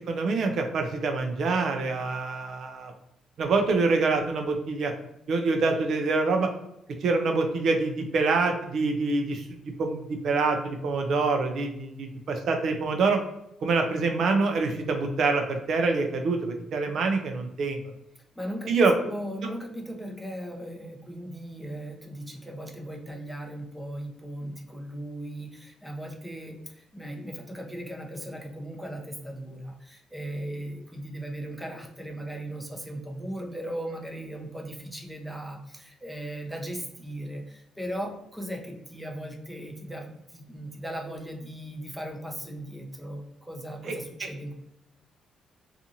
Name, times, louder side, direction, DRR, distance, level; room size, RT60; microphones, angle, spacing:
voice 1, 0.0-2.9 3.4-4.9 5.3-6.5 7.0-13.2 13.6-17.9 18.7-18.9 43.8-44.0, right 3 dB, 65° right, 4 dB, 0.4 m, -26 dB
voice 2, 18.4-44.5, right 1 dB, ahead, 0 dB, 0.6 m, -38 dB
2.6 x 2.4 x 2.8 m, 0.83 s
cardioid pair, 90°, 0 cm